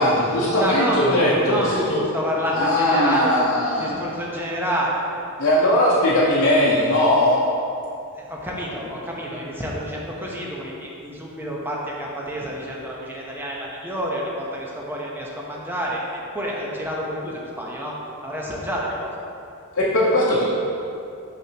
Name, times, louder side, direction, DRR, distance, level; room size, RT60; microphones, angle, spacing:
voice 1, 0.0-2.0 2.5-4.0 5.4-7.4 19.7-20.4, left 1 dB, 60° left, -6 dB, 0.8 m, -19 dB
voice 2, 0.6-3.4 3.8-5.0 8.2-16.0 16.3-18.0 18.2-19.1, equal, 10° right, -3 dB, 0.8 m, -28 dB
6.4 x 6.0 x 2.9 m, 2.6 s
head